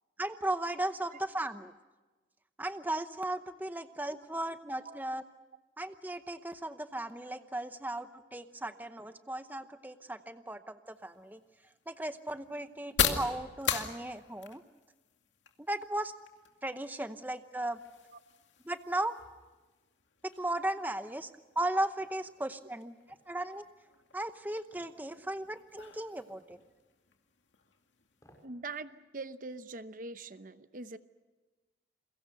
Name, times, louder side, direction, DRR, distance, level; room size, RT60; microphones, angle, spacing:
voice 1, 0.2-1.7 2.6-5.2 5.8-11.4 11.9-14.6 15.6-16.1 16.6-17.8 18.6-19.1 20.4-21.3 21.6-22.9 23.3-23.7 24.1-26.6, right 1 dB, 10° right, 10 dB, 0.8 m, -36 dB
sound 1, 10.8-28.4, left 7 dB, 85° left, 2.3 m, -41 dB
sound 2, 24.7-25.0 26.5-26.7 28.1-28.5 28.9-29.0, equal, 20° left, 5.5 m, -61 dB
voice 2, 28.4-31.0, right 3 dB, 45° right, 11 dB, 0.8 m, -43 dB
29.5 x 22.5 x 6.7 m, 1.2 s
head